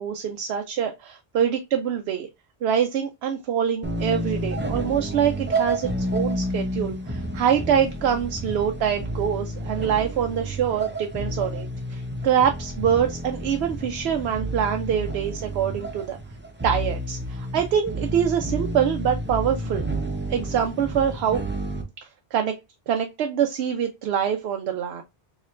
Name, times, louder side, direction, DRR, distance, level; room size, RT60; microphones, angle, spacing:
voice 1, 0.0-2.3 2.6-16.2 16.6-19.9 20.3-21.4 22.3-22.5 22.9-25.0, right 8 dB, 85° right, 0.8 m, -25 dB
sound 1, 3.8-21.8, right 1 dB, 15° right, 0.5 m, -30 dB
4.2 x 3.0 x 2.4 m
omnidirectional pair, 1.0 m